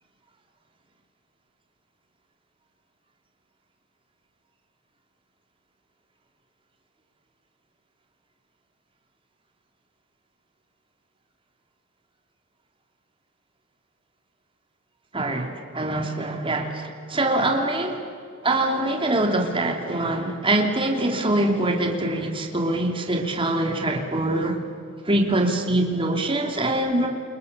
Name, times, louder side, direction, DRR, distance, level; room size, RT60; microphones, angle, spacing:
voice 1, 15.1-18.1 18.4-24.6 25.0-27.1, right 1 dB, 25° right, 3 dB, 3.1 m, -24 dB
28.5 x 28.5 x 6.8 m, 2.4 s
head